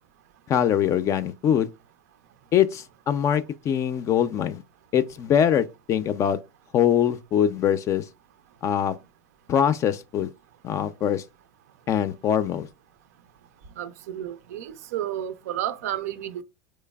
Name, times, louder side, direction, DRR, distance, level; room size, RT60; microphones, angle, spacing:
voice 1, 0.5-1.7 2.5-4.6 4.9-6.4 6.7-8.1 8.6-9.0 9.5-10.3 10.6-11.2 11.9-12.7, left 9 dB, 35° left, 0.4 m, -23 dB
voice 2, 13.8-16.4, right 11 dB, 80° right, 0.5 m, -31 dB
3.9 x 3.1 x 2.2 m
hypercardioid pair, 95°, 8 cm